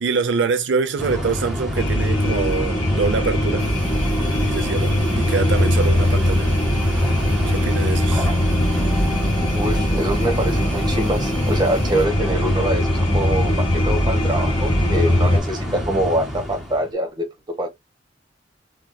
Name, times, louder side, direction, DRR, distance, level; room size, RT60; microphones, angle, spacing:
voice 1, 0.0-3.7 4.5-6.5 7.5-8.3, right 4 dB, 70° right, 0.5 m, -24 dB
sound 1, 1.0-16.9, left 1 dB, ahead, 1.2 m, -28 dB
sound 2, 1.7-15.4, left 1 dB, 30° left, 1.2 m, -21 dB
sound 3, 3.6-12.1, right 1 dB, 45° right, 0.9 m, -36 dB
voice 2, 9.5-17.3 17.6-17.7, right 1 dB, 25° right, 1.1 m, -24 dB
3.4 x 2.7 x 2.2 m
head